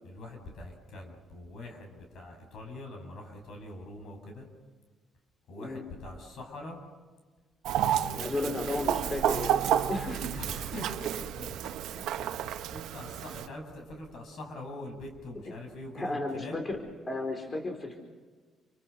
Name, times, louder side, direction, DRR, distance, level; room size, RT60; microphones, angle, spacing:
voice 1, 0.0-4.5 5.5-6.8 7.9-8.3 10.3-16.6, left 1 dB, 70° left, 3 dB, 7.2 m, -44 dB
Chicken rooster, 7.7-13.5, right 10 dB, 90° right, 1.1 m, -31 dB
voice 2, 8.2-9.6 9.9-10.2 12.0-12.1 15.9-16.8 17.1-18.0, left 2 dB, 30° left, 3 dB, 4.7 m, -33 dB
29.5 x 24.5 x 6.6 m, 1.4 s
cardioid pair, 90°, 0 cm